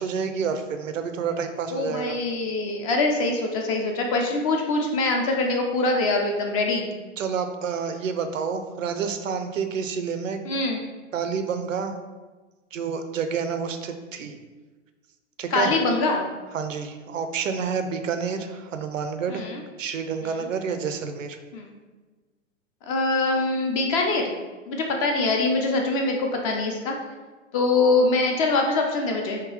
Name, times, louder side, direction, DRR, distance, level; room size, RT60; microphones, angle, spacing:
voice 1, 0.0-2.2 7.2-10.4 11.1-12.0 12.7-14.4 15.4-15.7 16.5-19.4 19.8-21.4, right 6 dB, 80° right, 7 dB, 0.5 m, -29 dB
voice 2, 1.7-6.9 10.4-10.8 15.5-16.3 19.3-19.6 20.2-20.5 21.5-21.8 22.8-24.3 24.7-26.9 27.5-29.4, left 3 dB, 30° left, 2 dB, 0.4 m, -24 dB
3.6 x 2.7 x 3.1 m, 1.3 s
hypercardioid pair, 110°, 38 cm